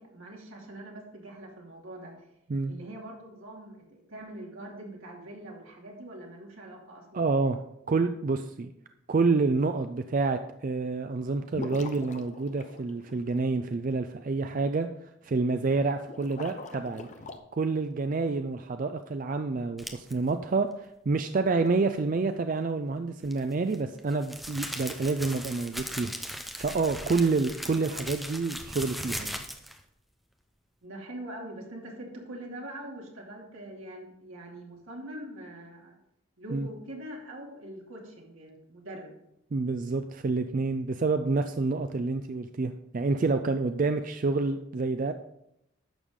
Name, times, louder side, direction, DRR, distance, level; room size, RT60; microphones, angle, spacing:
voice 1, 0.0-2.1 2.7-7.2 30.8-36.0 36.4-39.1, right 1 dB, 80° right, -1 dB, 2.6 m, -43 dB
voice 2, 7.1-7.6 7.9-8.7 9.1-17.1 17.5-29.4 36.5-36.7 39.5-45.1, right 3 dB, 40° right, 8 dB, 0.4 m, -28 dB
sound 1, 11.5-13.4 16.0-17.4, left 2 dB, 35° left, 0.7 m, -42 dB
sound 2, 19.8-20.1 23.2-29.8, equal, ahead, 0.6 m, -38 dB
11.0 x 7.1 x 3.7 m, 0.81 s
head